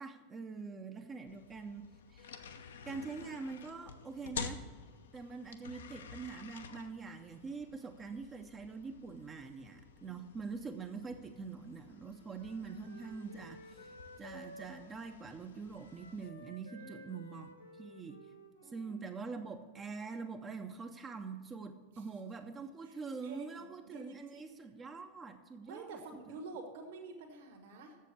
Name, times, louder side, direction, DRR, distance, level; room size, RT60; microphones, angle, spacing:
voice 1, 0.0-2.3 2.9-4.6 5.1-18.2 18.7-26.0 26.3-26.4, right 4 dB, 20° right, 6 dB, 0.7 m, -44 dB
sound 1, 1.3-16.3, left 6 dB, 65° left, 0.7 m, -50 dB
Wind instrument woodwind instrument, 11.8-19.6, equal, 80° left, 0.9 m, -55 dB
voice 2, 16.8-17.2 18.6-18.9 21.9-22.1 22.8-24.5 25.6-28.0, right 3 dB, 55° right, 2 dB, 1.6 m, -49 dB
7.5 x 7.4 x 8.2 m, 1.5 s
figure-of-eight pair, 90°, 0 cm